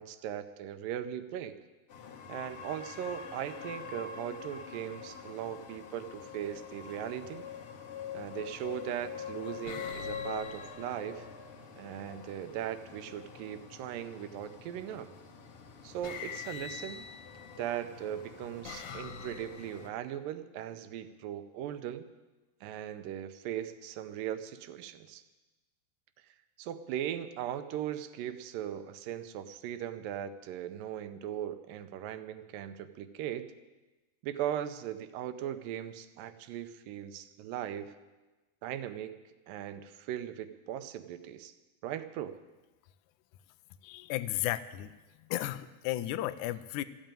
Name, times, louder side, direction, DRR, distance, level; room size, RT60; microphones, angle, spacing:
voice 1, 0.0-1.6 2.3-7.4 8.1-11.3 11.8-15.1 15.8-17.1 17.6-22.1 22.6-25.2 26.6-33.5 34.2-37.9 38.6-39.2 39.5-41.5 41.8-42.4, right 10 dB, 75° right, 11 dB, 2.2 m, -39 dB
sound 1, 1.9-19.9, left 7 dB, 50° left, 2.0 m, -46 dB
sound 2, 7.4-7.7 8.6-9.0 9.7-11.7 13.9-14.5 15.5-15.6 16.0-17.7 18.2-19.9, left 6 dB, 70° left, 2.9 m, -45 dB
voice 2, 43.8-44.9 45.3-46.8, left 15 dB, 90° left, 12 dB, 1.7 m, -34 dB
14.5 x 9.0 x 8.9 m, 1.2 s
omnidirectional pair, 4.3 m